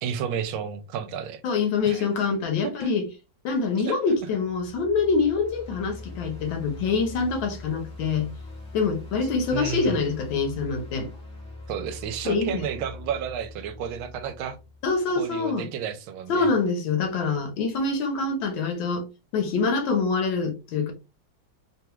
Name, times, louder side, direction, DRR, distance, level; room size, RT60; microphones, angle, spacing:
voice 1, 0.0-1.4 1.8-2.0 2.6-2.9 3.9-4.0 9.5-10.0 11.7-14.6 15.2-16.5, right 8 dB, 85° right, 1.4 m, -32 dB
voice 2, 1.4-3.1 3.4-8.3 8.7-11.1 12.2-12.5 14.8-15.7 16.3-19.0 19.3-20.9, left 4 dB, 70° left, 1.6 m, -25 dB
sound 1, 4.3-15.3, left 2 dB, 30° left, 0.9 m, -42 dB
3.6 x 2.3 x 2.9 m
omnidirectional pair, 2.2 m